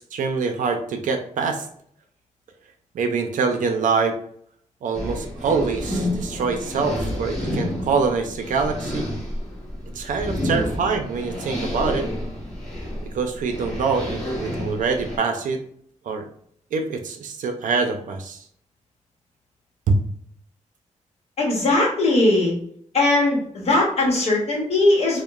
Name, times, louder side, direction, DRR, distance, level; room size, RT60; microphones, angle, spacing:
voice 1, 0.0-1.7 2.9-4.2 4.8-9.1 9.9-12.1 13.0-15.6 16.0-16.3 16.7-18.4 19.9-20.0, right 4 dB, 85° right, 5 dB, 0.4 m, -24 dB
sound 1, 4.9-15.2, left 1 dB, ahead, 0.8 m, -29 dB
voice 2, 21.4-22.5 22.9-25.2, left 2 dB, 55° left, -3 dB, 0.9 m, -19 dB
2.9 x 2.0 x 2.3 m, 0.63 s
wide cardioid pair, 165°, 13 cm